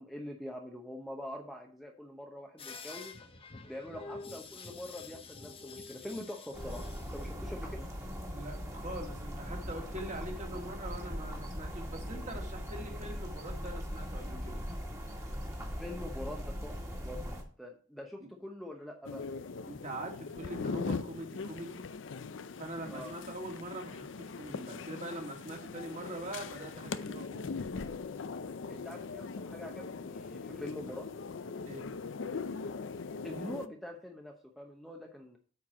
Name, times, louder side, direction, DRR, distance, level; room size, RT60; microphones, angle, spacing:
voice 1, 0.0-3.2 3.6-7.9 15.8-19.2 22.9-23.1 28.7-31.1 33.2-35.4, left 1 dB, ahead, 1 dB, 0.9 m, -44 dB
sound 1, 2.6-7.6, left 4 dB, 30° left, 0.9 m, -48 dB
sound 2, 6.5-17.4, equal, 15° right, 1.9 m, -40 dB
voice 2, 8.3-14.6 18.2-18.3 19.7-21.9 22.6-27.6 31.6-31.9, right 1 dB, 40° right, 1 dB, 2.4 m, -43 dB
sound 3, 19.0-33.7, left 4 dB, 70° left, 0.5 m, -40 dB
8.6 x 4.7 x 6.2 m, 0.41 s
head